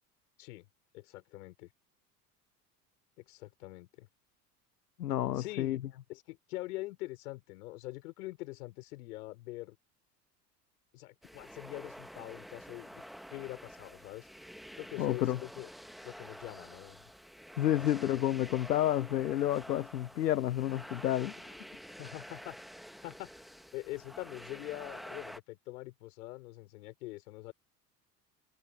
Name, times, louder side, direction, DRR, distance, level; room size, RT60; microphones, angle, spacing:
voice 1, 0.9-1.7 3.2-4.1 5.3-5.8 6.1-9.8 10.9-13.0 13.3-14.3 14.8-15.7 16.0-17.0 17.7-18.2 22.0-22.6 23.0-23.3 23.7-27.5, left 19 dB, 65° left, 6.5 m, -44 dB
voice 2, 5.0-5.8 15.0-15.4 17.6-21.6, left 12 dB, 85° left, 0.5 m, -30 dB
sound 1, 11.2-25.4, equal, ahead, 1.9 m, -49 dB
figure-of-eight pair, 70°, 48 cm